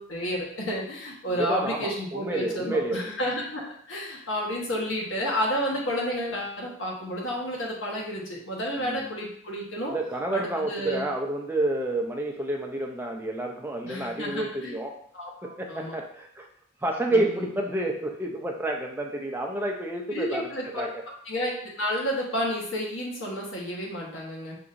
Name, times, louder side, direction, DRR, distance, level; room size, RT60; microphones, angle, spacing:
voice 1, 0.0-3.6 3.9-9.9 10.3-11.1 13.8-14.7 15.1-15.9 17.1-17.5 20.1-20.9 21.2-24.6, equal, 80° left, -3 dB, 1.3 m, -31 dB
voice 2, 1.3-3.1 8.8-9.0 9.9-14.9 15.4-16.4 16.8-20.4 20.7-21.0, right 1 dB, 10° right, 0 dB, 0.5 m, -29 dB
5.9 x 2.8 x 2.6 m, 0.62 s
head